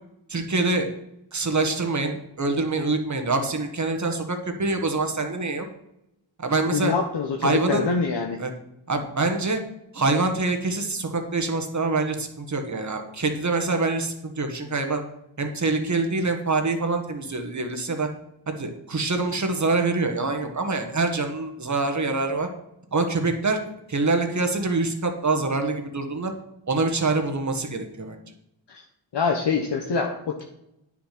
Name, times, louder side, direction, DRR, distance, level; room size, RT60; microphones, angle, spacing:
voice 1, 0.3-0.9 1.3-5.7 6.4-6.9 7.4-7.9 8.4-8.5 8.9-9.6 9.9-15.0 15.4-18.1 18.5-22.5 22.9-23.6 23.9-26.3 26.7-28.2, right 3 dB, 35° right, 5 dB, 1.6 m, -25 dB
voice 2, 6.7-7.4 7.7-8.4 28.7-28.8 29.1-30.4, left 5 dB, 60° left, 1 dB, 1.2 m, -25 dB
9.7 x 6.2 x 6.0 m, 0.84 s
wide cardioid pair, 95°, 47 cm